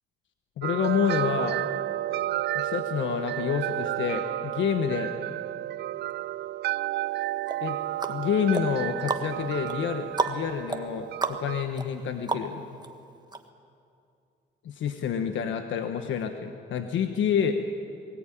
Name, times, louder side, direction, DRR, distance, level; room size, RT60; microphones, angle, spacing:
voice 1, 0.6-1.6 2.5-5.1 7.6-7.8 8.1-12.6 14.6-17.5, left 7 dB, 75° left, 6 dB, 1.3 m, -28 dB
sound 1, 0.6-11.6, right 14 dB, 60° right, 0.5 m, -31 dB
sound 2, 7.5-12.9 13.3-13.4, right 3 dB, 20° right, 1.5 m, -33 dB
21.5 x 18.5 x 9.2 m, 2.5 s
cardioid pair, 90°, 20 cm